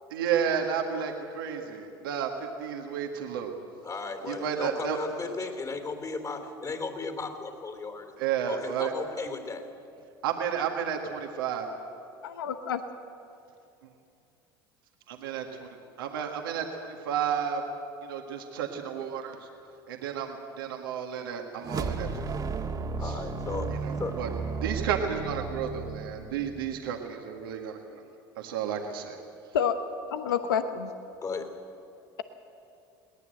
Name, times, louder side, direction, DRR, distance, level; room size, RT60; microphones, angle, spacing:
voice 1, 0.1-2.3 2.6-3.5 4.3-5.0 8.2-8.9 10.2-11.7 15.1-15.7 16.0-17.6 18.0-19.4 19.9-22.4 23.7-24.3 24.6-28.0 28.4-29.2, right 8 dB, 85° right, 2 dB, 1.8 m, -32 dB
voice 2, 3.8-8.1 8.4-9.6 23.0-24.2 31.2-31.5, left 4 dB, 30° left, 6 dB, 3.6 m, -36 dB
voice 3, 12.2-12.8 29.5-29.8 30.1-30.9, left 8 dB, 90° left, 9 dB, 1.0 m, -28 dB
sound 1, 21.6-27.0, right 4 dB, 35° right, 1.7 m, -34 dB
22.0 x 18.5 x 7.9 m, 2.6 s
hypercardioid pair, 80°, 11 cm